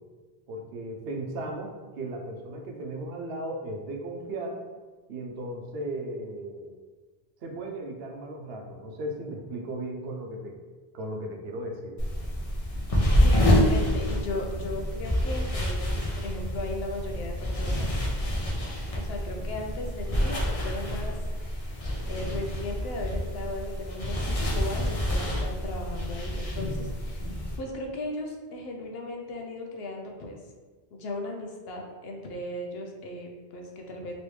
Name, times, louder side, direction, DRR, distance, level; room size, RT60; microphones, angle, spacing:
voice 1, 0.5-4.6 5.1-6.7 7.4-10.5 10.9-12.0, right 1 dB, 75° right, 2 dB, 0.8 m, -36 dB
sound 1, 12.0-27.6, equal, 40° left, 0.7 m, -27 dB
voice 2, 13.1-18.0 18.9-27.3 27.6-30.4 30.9-34.1, left 1 dB, 75° left, 1 dB, 0.8 m, -37 dB
3.2 x 3.0 x 3.1 m, 1.3 s
omnidirectional pair, 1.0 m